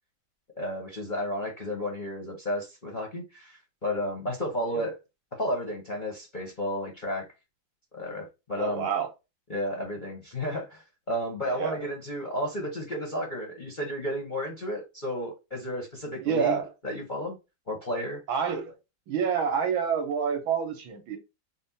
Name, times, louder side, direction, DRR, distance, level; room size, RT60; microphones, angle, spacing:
voice 1, 0.6-5.0 5.4-7.3 7.9-8.9 9.5-17.4 17.7-18.2, equal, 35° left, 0.8 m, -32 dB
voice 2, 8.6-9.1 11.5-11.8 16.3-16.7 18.3-18.7 19.1-21.2, right 7 dB, 85° right, 1.9 m, -28 dB
4.2 x 2.2 x 4.1 m
omnidirectional pair, 2.2 m